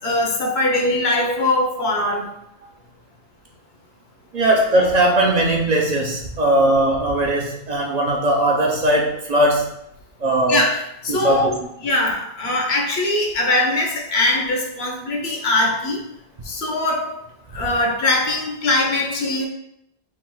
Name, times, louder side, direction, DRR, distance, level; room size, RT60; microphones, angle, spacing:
voice 1, 0.0-2.3 10.5-11.5 11.8-16.0 16.4-17.2 17.5-19.5, left 2 dB, 80° left, 1 dB, 1.1 m, -21 dB
voice 2, 4.3-9.7 10.2-10.7 11.1-11.5, right 1 dB, 50° right, -1 dB, 0.6 m, -19 dB
3.4 x 2.3 x 4.4 m, 0.78 s
omnidirectional pair, 1.1 m